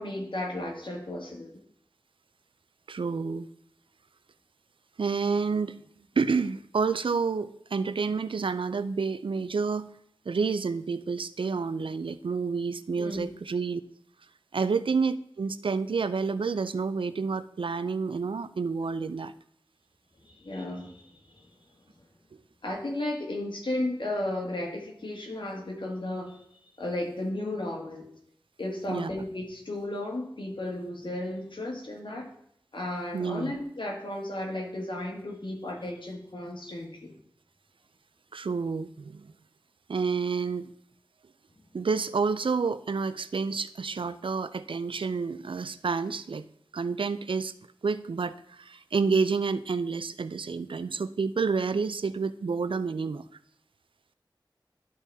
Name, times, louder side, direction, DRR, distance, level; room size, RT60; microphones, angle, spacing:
voice 1, 0.0-1.5 13.0-13.3 20.2-21.4 22.6-26.4 26.8-28.1 28.6-32.3 32.7-37.1, left 1 dB, 70° left, 0 dB, 1.8 m, -34 dB
voice 2, 2.9-3.5 5.0-5.8 6.2-9.9 10.3-13.8 14.5-19.3 28.9-29.1 33.1-33.6 38.3-39.3 39.9-40.7 41.7-46.4 46.7-47.5 47.8-53.3, right 5 dB, 90° right, 13 dB, 0.4 m, -29 dB
12.0 x 4.2 x 3.5 m, 0.69 s
wide cardioid pair, 45°, 9 cm